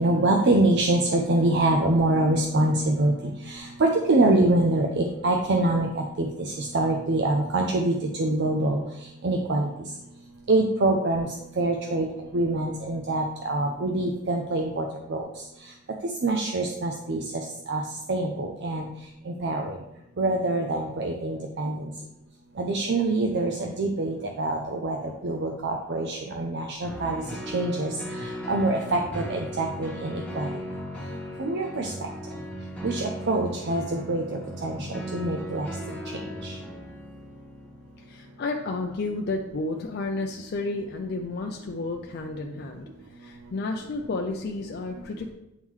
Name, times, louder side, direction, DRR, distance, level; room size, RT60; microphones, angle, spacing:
voice 1, 0.0-8.8 9.2-9.7 10.5-11.3 11.6-12.1 12.3-15.2 16.2-17.8 18.1-18.9 19.3-19.8 20.2-21.8 22.6-25.0 25.2-27.2 27.5-27.9 28.2-30.5 31.4-31.9 32.8-35.7 36.4-36.5, right 2 dB, 55° right, 2 dB, 0.5 m, -25 dB
sound 1, 26.8-39.3 39.8-39.9, equal, 5° left, 1.1 m, -37 dB
voice 2, 38.0-42.9 43.2-45.3, left 3 dB, 50° left, 3 dB, 0.4 m, -31 dB
9.0 x 3.6 x 3.2 m, 0.91 s
head